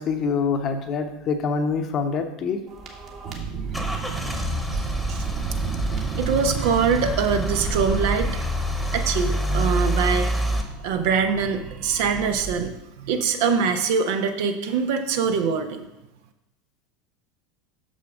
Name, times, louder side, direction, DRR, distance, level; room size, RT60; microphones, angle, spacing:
voice 1, 0.0-2.6 3.3-3.4, left 5 dB, 35° left, 6 dB, 1.0 m, -25 dB
sound 1, 2.7-12.5, right 4 dB, 40° right, 1.7 m, -31 dB
Car / Engine starting / Idling, 2.8-10.6, right 1 dB, ahead, 1.2 m, -27 dB
voice 2, 6.2-8.4 8.9-10.3 10.8-15.9, right 6 dB, 55° right, 6 dB, 0.9 m, -23 dB
6.8 x 6.4 x 5.1 m, 0.95 s
figure-of-eight pair, 75°, 0 cm